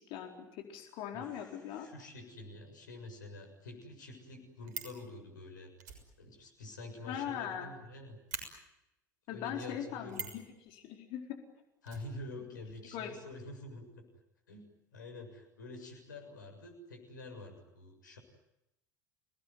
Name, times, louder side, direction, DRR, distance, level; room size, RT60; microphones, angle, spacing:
voice 1, 0.1-1.9 7.1-7.7 9.3-11.4 12.9-13.1, left 9 dB, 55° left, 3 dB, 4.4 m, -40 dB
voice 2, 1.1-5.7 6.2-8.2 9.3-10.3 11.8-14.1 14.5-18.2, left 2 dB, 75° left, 5 dB, 7.0 m, -47 dB
Fire, 4.3-5.0 5.8-7.6 7.8-7.9 8.3-8.4 10.1-10.4 11.9-12.7 13.0-13.1 13.3-13.4, right 7 dB, 65° right, 6.5 m, -44 dB
29.5 x 19.0 x 9.4 m, 0.88 s
figure-of-eight pair, 70°, 10 cm